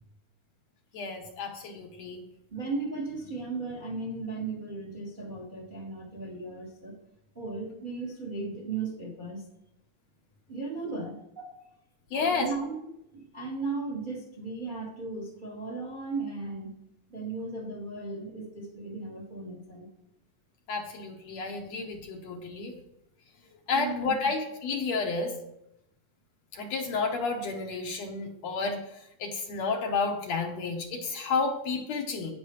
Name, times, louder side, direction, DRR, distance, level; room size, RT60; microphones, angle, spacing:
voice 1, 0.9-2.2 12.1-12.5 20.7-22.7 23.7-25.3 26.5-32.3, left 4 dB, 65° left, 1 dB, 2.0 m, -31 dB
voice 2, 2.5-7.0 7.3-9.4 10.5-11.6 12.1-16.7 17.1-19.9 23.7-24.1, right 3 dB, 25° right, -1 dB, 1.1 m, -36 dB
10.5 x 9.5 x 3.1 m, 0.81 s
omnidirectional pair, 3.6 m